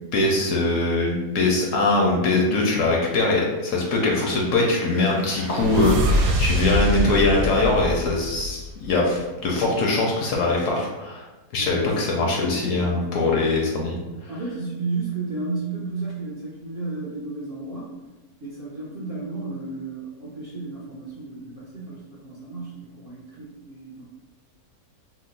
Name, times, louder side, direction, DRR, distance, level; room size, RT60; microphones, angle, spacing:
voice 1, 0.1-11.2 11.5-14.0, left 2 dB, 65° left, -1 dB, 0.8 m, -22 dB
sound 1, 4.2-9.0, equal, 75° right, 1.0 m, -25 dB
voice 2, 11.6-12.3 12.9-13.2 14.3-17.9 18.4-24.0, right 3 dB, 60° right, -7 dB, 0.6 m, -33 dB
2.8 x 2.0 x 3.9 m, 1.1 s
omnidirectional pair, 1.6 m